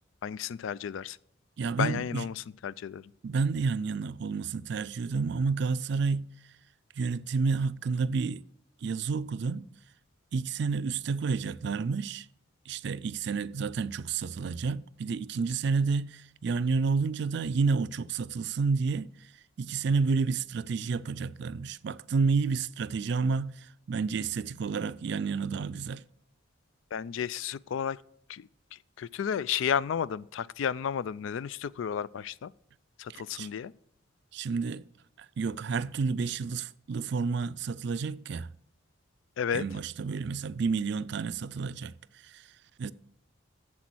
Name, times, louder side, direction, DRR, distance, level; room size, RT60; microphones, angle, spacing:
voice 1, 0.2-1.2 1.8-3.1 26.9-28.0 28.3-32.5 33.0-33.7 39.4-39.6, left 8 dB, 70° left, 0.3 m, -32 dB
voice 2, 1.6-2.3 3.2-6.3 7.0-8.4 8.8-9.7 10.3-12.3 12.7-19.3 19.6-26.0 33.1-33.5 34.3-34.8 35.2-38.5 39.5-42.5 42.8-42.9, right 4 dB, 55° right, 0.4 m, -30 dB
8.2 x 7.5 x 6.1 m
head